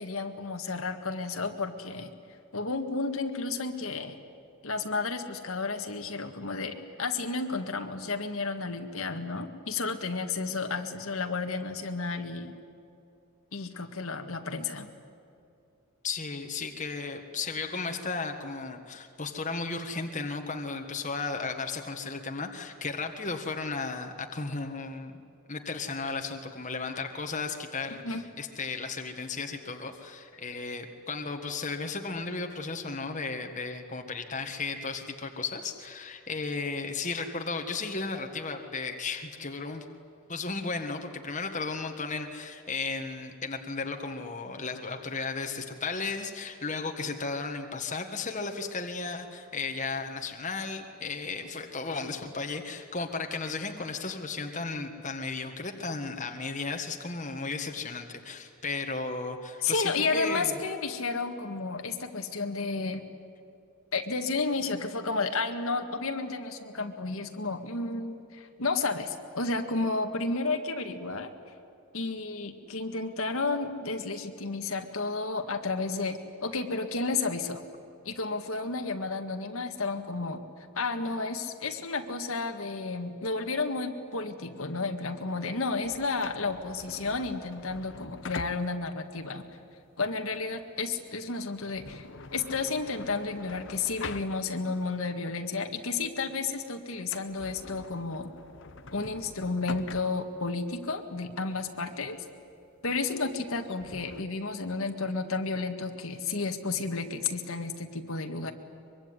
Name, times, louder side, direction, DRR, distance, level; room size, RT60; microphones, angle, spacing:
voice 1, 0.0-2.1 2.5-4.2 4.6-12.5 13.5-14.9 28.0-28.2 59.6-63.0 63.9-71.3 71.9-77.6 78.1-80.4 80.8-89.5 90.0-92.0 92.3-98.3 98.9-102.2 102.8-108.5, left 3 dB, 70° left, 5 dB, 1.9 m, -32 dB
voice 2, 16.0-25.2 25.5-39.8 40.3-60.6, left 4 dB, 35° left, 4 dB, 1.6 m, -35 dB
sound 1, 85.8-94.8 95.2-95.3 96.0-96.2 96.5-96.6 97.0-104.2, left 4 dB, 55° left, 1.0 m, -45 dB
23.5 x 23.5 x 9.8 m, 2.6 s
head